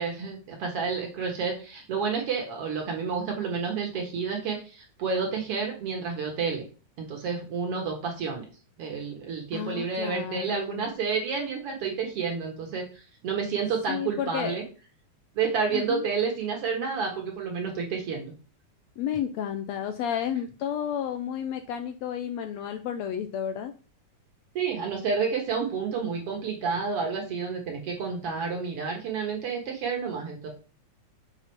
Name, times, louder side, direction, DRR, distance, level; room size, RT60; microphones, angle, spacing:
voice 1, 0.0-6.6 7.0-8.4 8.8-14.6 15.3-18.3 24.6-30.5, right 5 dB, 55° right, 2 dB, 2.2 m, -30 dB
voice 2, 9.5-10.9 13.9-14.6 15.7-16.0 19.0-23.7, left 9 dB, 75° left, 7 dB, 1.6 m, -32 dB
7.0 x 4.1 x 5.8 m, 0.36 s
omnidirectional pair, 3.5 m